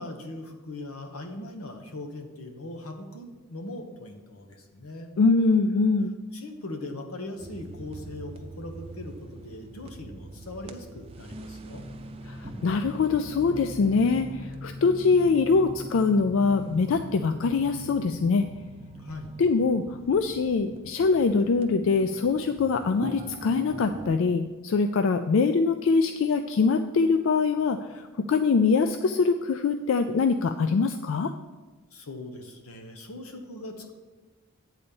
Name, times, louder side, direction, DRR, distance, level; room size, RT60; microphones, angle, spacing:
voice 1, 0.0-5.1 6.3-11.8 19.0-19.3 31.9-33.9, left 2 dB, 85° left, 5 dB, 1.1 m, -40 dB
voice 2, 5.2-6.1 12.3-18.5 19.4-31.3, left 4 dB, 60° left, 8 dB, 0.3 m, -23 dB
sound 1, 7.4-24.2, equal, 25° right, 0.5 m, -42 dB
8.6 x 4.1 x 6.9 m, 1.3 s
head